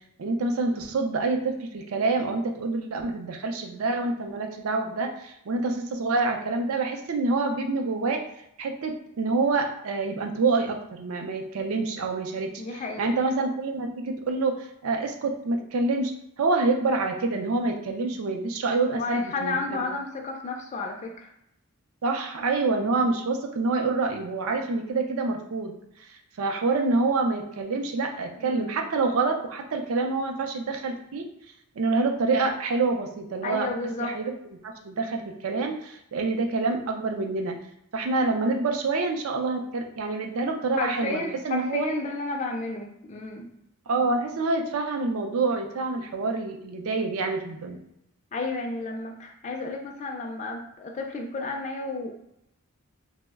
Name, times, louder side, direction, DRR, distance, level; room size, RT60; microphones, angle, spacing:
voice 1, 0.2-8.2 8.6-16.1 16.4-19.9 22.0-25.7 26.0-31.3 31.8-33.7 34.0-34.3 34.6-37.6 37.9-41.9 43.9-47.8, right 3 dB, 70° right, 3 dB, 0.4 m, -27 dB
voice 2, 12.6-13.2 18.9-21.3 28.4-28.7 33.4-34.1 40.8-43.5 48.3-52.1, left 3 dB, 30° left, 1 dB, 0.3 m, -32 dB
3.0 x 2.0 x 3.4 m, 0.79 s
head